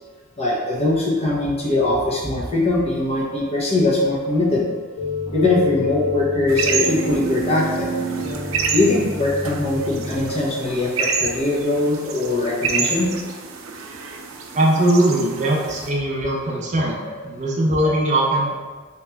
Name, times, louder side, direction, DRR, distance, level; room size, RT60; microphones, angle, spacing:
voice 1, 0.4-4.6 5.3-7.9 8.7-13.1 16.2-16.4 16.7-17.2 17.8-18.0, left 2 dB, 30° left, -5 dB, 0.8 m, -21 dB
sound 1, 5.0-10.3, left 1 dB, 85° left, 1.2 m, -27 dB
sound 2, 6.5-15.9, right 5 dB, 90° right, 0.5 m, -28 dB
voice 2, 14.5-18.5, right 1 dB, 35° right, -3 dB, 0.5 m, -20 dB
3.2 x 3.0 x 3.4 m, 1.5 s
head